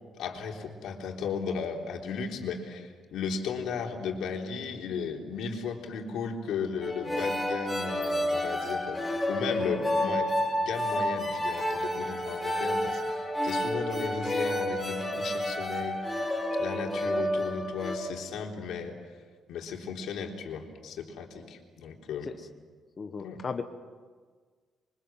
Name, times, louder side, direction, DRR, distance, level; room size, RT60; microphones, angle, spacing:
voice 1, 0.1-13.0 13.4-16.3 16.6-19.0 19.5-22.3 23.2-23.4, left 5 dB, 80° left, 1 dB, 3.7 m, -35 dB
Violin Prelude (Reverbed), 6.8-18.0, left 1 dB, 10° left, 3.9 m, -30 dB
voice 2, 23.0-23.6, left 5 dB, 30° left, 6 dB, 1.1 m, -36 dB
27.0 x 24.5 x 7.5 m, 1.5 s
cardioid pair, 165°, 0 cm